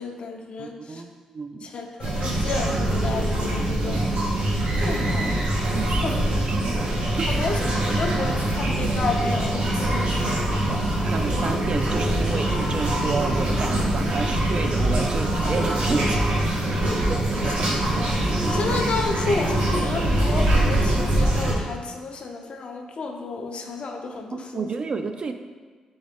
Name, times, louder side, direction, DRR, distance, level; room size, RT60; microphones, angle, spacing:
voice 1, 0.0-1.0 1.6-4.0 4.8-5.4 6.0-6.2 7.3-7.6 7.9-11.1 18.4-24.7, left 3 dB, 60° left, 3 dB, 0.5 m, -31 dB
voice 2, 0.6-1.7 5.0-6.9 7.2-7.3 10.8-16.3 17.1-17.2 17.4-17.7 24.3-25.3, right 4 dB, 45° right, 7 dB, 0.3 m, -31 dB
sound 1, 2.0-21.5, right 1 dB, 85° right, 0.9 m, -23 dB
sound 2, 4.6-5.6 7.2-8.2 9.5-11.1 12.2-13.9 15.1-17.2, right 1 dB, 65° right, 1.2 m, -38 dB
3.9 x 3.8 x 3.4 m, 1.5 s
cardioid pair, 80°, 2 cm